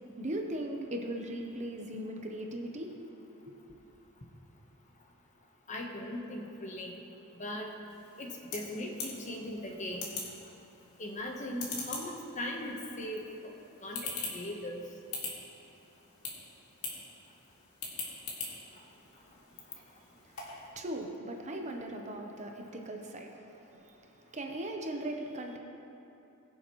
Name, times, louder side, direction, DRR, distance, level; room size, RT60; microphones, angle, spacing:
voice 1, 0.2-2.9 3.5-3.6 20.8-23.8 24.3-25.6, right 1 dB, 30° right, 2 dB, 0.8 m, -38 dB
voice 2, 5.7-7.0 7.4-7.7 8.2-10.2 11.0-13.5 13.8-14.0 14.3-14.8, left 1 dB, 35° left, 1 dB, 1.1 m, -39 dB
sound 1, 7.9-20.7, left 3 dB, 90° left, 2.2 m, -44 dB
21.0 x 7.1 x 3.1 m, 2.8 s
head